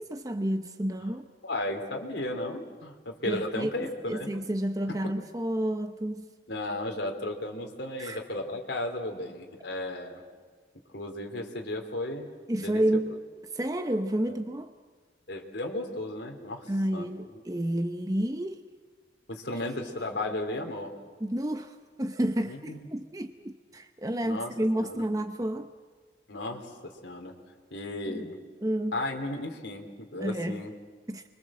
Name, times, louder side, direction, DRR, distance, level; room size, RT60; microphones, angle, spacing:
voice 1, 0.0-1.3 3.2-6.3 8.0-8.2 12.5-13.2 13.5-14.7 16.7-18.6 21.2-25.7 28.1-28.2 28.6-29.0 30.2-30.6 31.1-31.2, right 1 dB, 20° right, 0.8 m, -30 dB
voice 2, 1.4-4.3 5.0-5.1 6.5-10.2 10.9-12.3 12.6-12.8 14.3-14.4 15.3-17.1 17.3-17.4 19.3-20.9 22.4-22.9 24.2-25.0 26.3-27.3 27.7-28.4 28.9-30.7, left 1 dB, 75° left, 3.3 m, -35 dB
29.5 x 24.5 x 7.5 m
head